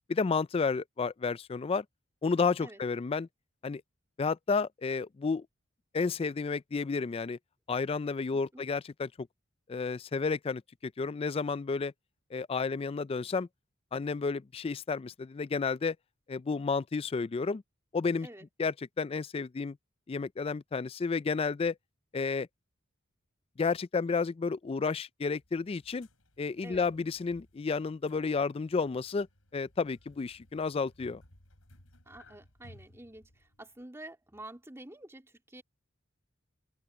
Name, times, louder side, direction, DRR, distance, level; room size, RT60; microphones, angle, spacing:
voice 1, 0.1-1.8 2.2-3.3 3.6-3.8 4.2-5.5 5.9-7.4 7.7-9.3 9.7-11.9 12.3-13.5 13.9-16.0 16.3-17.6 17.9-18.3 18.6-19.8 20.1-21.8 22.1-22.5 23.6-26.1 26.4-29.3 29.5-31.2, left 4 dB, 30° left, 0.3 m, -31 dB
voice 2, 8.3-8.6 18.2-18.5 26.6-26.9 32.1-35.6, right 1 dB, 15° right, 2.7 m, -48 dB
sound 1, 25.4-33.8, left 1 dB, 85° left, 5.2 m, -60 dB
open air
head